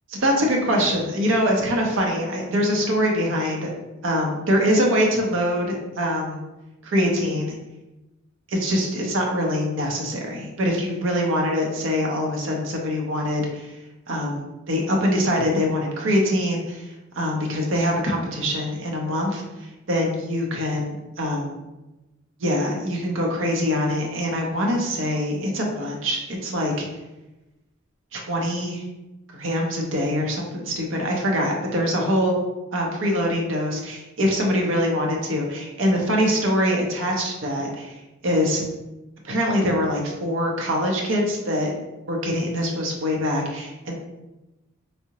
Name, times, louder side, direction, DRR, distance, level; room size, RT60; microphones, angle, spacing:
voice 1, 0.1-3.7 4.0-6.4 6.8-7.6 8.5-13.7 14.1-16.9 17.1-21.6 22.4-26.9 28.1-28.8 29.3-32.4 32.7-38.0 38.2-38.6 39.2-41.7 42.1-43.9, equal, 65° right, 0 dB, 0.6 m, -24 dB
3.6 x 2.1 x 2.8 m, 1.0 s
head